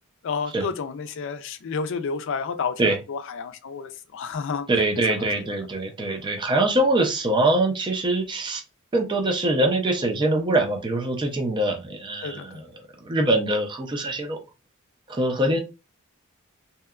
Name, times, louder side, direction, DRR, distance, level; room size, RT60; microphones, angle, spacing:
voice 1, 0.2-4.7 5.2-5.5 12.2-12.6, left 5 dB, 60° left, 0.4 m, -31 dB
voice 2, 4.7-8.6 8.9-12.7 13.0-14.4 15.1-15.6, right 1 dB, 20° right, 0.4 m, -23 dB
2.7 x 2.2 x 2.3 m
head